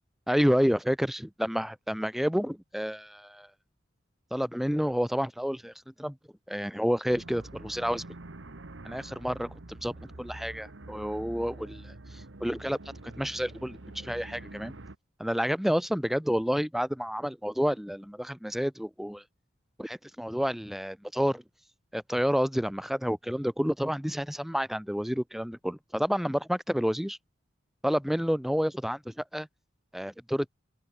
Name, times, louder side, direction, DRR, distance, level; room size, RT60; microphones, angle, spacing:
voice 1, 0.3-3.5 4.3-6.2 6.5-8.0 8.8-14.7 15.2-19.2 19.8-21.4 21.9-27.2 27.8-29.5 29.9-30.5, equal, ahead, 0.8 m, -29 dB
sound 1, 7.1-15.0, right 2 dB, 75° right, 1.4 m, -46 dB
open air
head